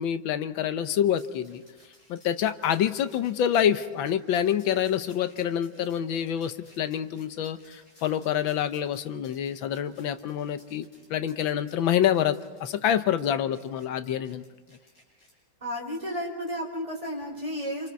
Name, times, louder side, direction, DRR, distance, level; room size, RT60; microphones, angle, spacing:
voice 1, 0.0-1.6 2.1-14.4, left 9 dB, 85° left, 11 dB, 1.7 m, -27 dB
sound 1, 1.2-15.3 15.9-16.0 16.5-16.6 17.0-17.2, left 1 dB, 45° left, 7.1 m, -59 dB
voice 2, 15.6-17.9, equal, 15° right, -2 dB, 4.4 m, -32 dB
28.0 x 27.0 x 4.7 m, 1.3 s
omnidirectional pair, 2.1 m